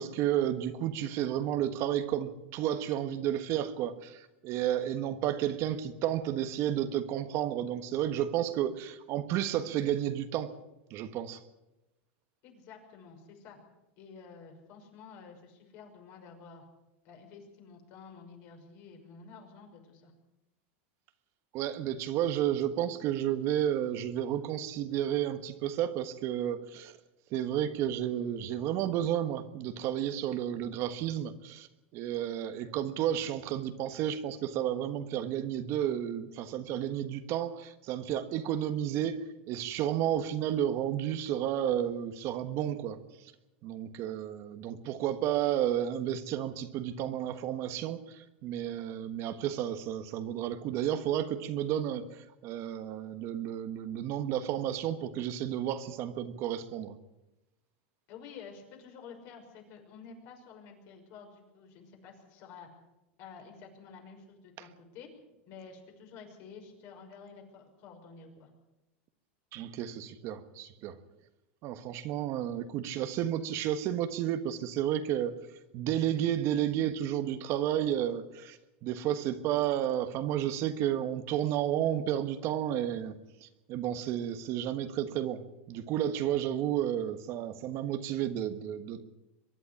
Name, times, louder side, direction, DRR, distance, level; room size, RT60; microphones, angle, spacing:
voice 1, 0.0-10.5 10.9-11.4 21.5-27.0 27.3-31.7 31.9-43.0 43.6-56.9 69.5-70.9 71.6-75.3 75.7-83.2 83.4-89.0, right 11 dB, 45° right, 10 dB, 1.5 m, -32 dB
voice 2, 12.4-13.6 14.0-16.7 17.0-20.1 58.1-62.7 63.2-65.1 65.5-68.5, left 5 dB, 50° left, 3 dB, 5.9 m, -50 dB
23.5 x 11.0 x 9.9 m, 0.94 s
supercardioid pair, 130°, 7 cm